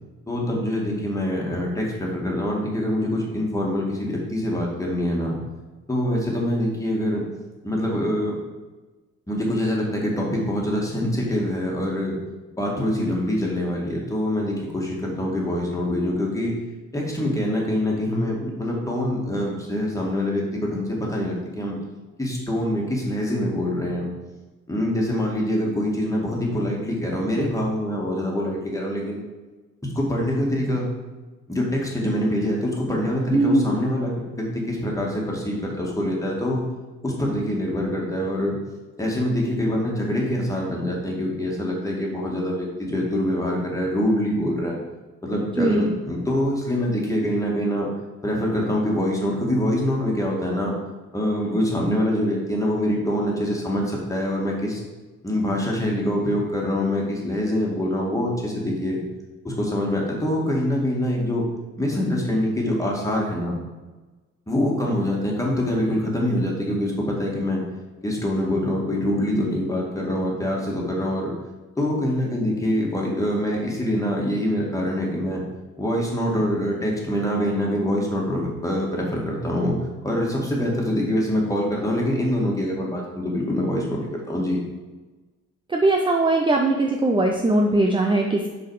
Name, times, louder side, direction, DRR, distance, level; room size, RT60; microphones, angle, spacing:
voice 1, 0.3-5.4 5.9-7.2 7.6-8.3 9.3-12.2 12.5-16.5 16.9-21.8 22.2-24.1 24.7-29.2 29.8-30.9 31.5-36.6 37.0-38.6 39.0-44.8 45.2-47.9 48.2-50.7 51.1-54.8 55.2-59.0 59.4-61.4 61.8-63.5 64.5-67.6 68.0-71.3 71.8-75.4 75.8-79.8 80.0-84.0 84.3-84.6, left 1 dB, 10° left, -2 dB, 2.2 m, -24 dB
voice 2, 33.3-33.6 45.6-46.0 85.7-88.5, right 2 dB, 15° right, 2 dB, 0.7 m, -20 dB
6.3 x 5.0 x 5.0 m, 1.2 s
cardioid pair, 90°, 30 cm